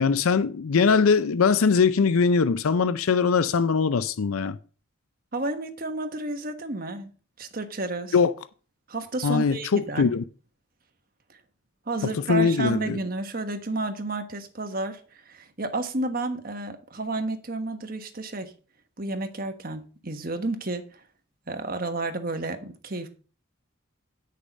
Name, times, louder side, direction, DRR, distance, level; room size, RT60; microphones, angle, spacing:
voice 1, 0.0-4.6 8.1-8.3 9.2-10.2 12.0-13.0, left 5 dB, 85° left, 0.5 m, -21 dB
voice 2, 5.3-7.1 7.4-8.1 8.9-10.1 11.9-18.5 19.0-21.0 21.5-23.1, right 2 dB, 45° right, 1.3 m, -31 dB
9.8 x 6.6 x 5.2 m
head